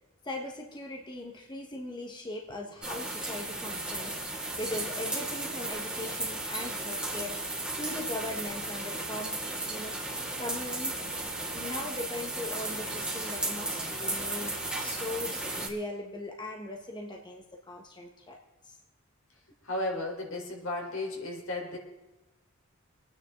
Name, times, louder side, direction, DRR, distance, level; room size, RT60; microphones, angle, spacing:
voice 1, 0.2-4.2 4.6-7.4 7.8-9.9 10.4-11.1 11.5-18.4 18.7-18.8, left 2 dB, 20° left, 1 dB, 1.4 m, -39 dB
sound 1, 2.8-15.7, right 2 dB, 5° right, 2.3 m, -35 dB
voice 2, 19.6-21.8, left 2 dB, 75° left, 0 dB, 4.0 m, -34 dB
26.5 x 9.6 x 3.8 m, 1.0 s
head